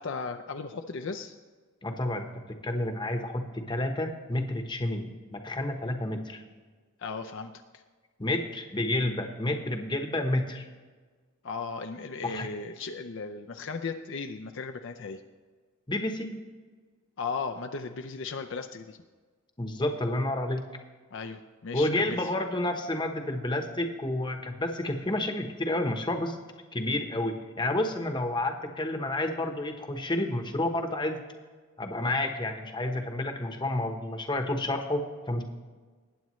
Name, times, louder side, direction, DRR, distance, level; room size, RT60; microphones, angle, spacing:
voice 1, 0.0-1.3 7.0-7.8 11.4-15.2 17.2-19.0 21.1-22.3, left 4 dB, 55° left, 6 dB, 0.5 m, -36 dB
voice 2, 1.8-2.3 2.6-6.4 8.2-10.7 12.2-12.5 15.9-16.4 19.6-20.6 21.7-26.4 26.7-31.2 31.8-35.4, left 1 dB, 20° left, 5 dB, 1.0 m, -30 dB
19.5 x 9.1 x 3.1 m, 1.4 s
head